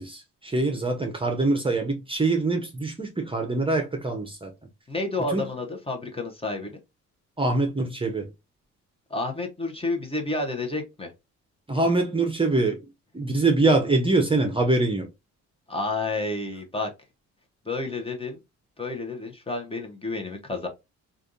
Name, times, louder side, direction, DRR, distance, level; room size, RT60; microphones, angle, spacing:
voice 1, 0.0-4.5 5.3-5.4 7.4-8.3 11.7-12.8 13.1-15.1, right 2 dB, 20° right, 0.8 m, -24 dB
voice 2, 4.9-6.7 9.1-11.1 15.7-16.9 17.6-18.4 18.8-20.7, left 2 dB, 20° left, 0.9 m, -30 dB
3.4 x 2.5 x 2.6 m
cardioid pair, 90°, 30 cm